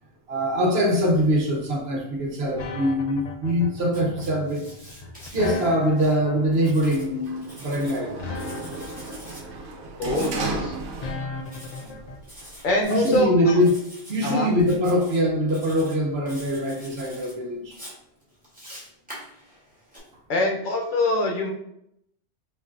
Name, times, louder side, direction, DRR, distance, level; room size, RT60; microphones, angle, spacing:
voice 1, 0.3-4.7 5.3-8.1 11.8-12.0 12.8-13.8 14.1-17.7, equal, 60° right, 0 dB, 1.1 m, -23 dB
sound 1, 2.6-12.2, left 3 dB, 80° left, 0.3 m, -36 dB
Writing, 3.8-6.1 6.5-8.0 8.3-9.4 10.0-10.4 11.5-11.9 12.2-13.2 13.6-14.3 14.6-15.2 15.5-16.0 16.3-17.3 17.7-20.0, equal, 5° right, 1.4 m, -45 dB
Sliding door, 6.8-11.6 11.9-12.8, right 3 dB, 85° right, 1.0 m, -34 dB
voice 2, 10.0-10.7 12.6-13.6 14.2-14.5 20.3-21.5, left 2 dB, 45° left, 1 dB, 0.8 m, -24 dB
5.3 x 2.7 x 2.6 m, 0.77 s
omnidirectional pair, 1.2 m